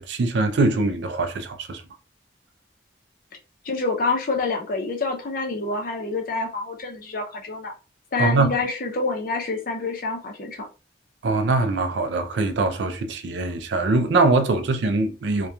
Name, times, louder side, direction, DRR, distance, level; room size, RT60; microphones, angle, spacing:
voice 1, 0.0-1.8 8.2-8.6 11.2-15.5, right 3 dB, 75° right, 0.4 m, -22 dB
voice 2, 3.6-7.7 8.1-10.7, left 3 dB, 50° left, 0.6 m, -27 dB
2.8 x 2.2 x 2.3 m
head